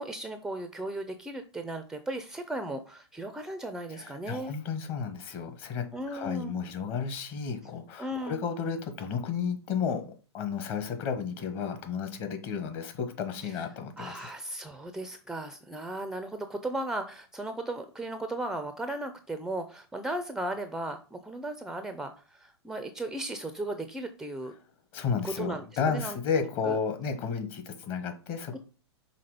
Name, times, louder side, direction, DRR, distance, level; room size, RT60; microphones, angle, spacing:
voice 1, 0.0-4.5 5.9-6.5 8.0-8.4 13.4-13.5 14.0-24.5 25.2-26.8 28.5-28.6, right 1 dB, 5° right, 8 dB, 0.5 m, -36 dB
voice 2, 3.9-10.0 10.3-14.3 24.9-28.6, left 6 dB, 40° left, 7 dB, 1.4 m, -32 dB
5.8 x 3.7 x 5.0 m, 0.36 s
hypercardioid pair, 120°, 15 cm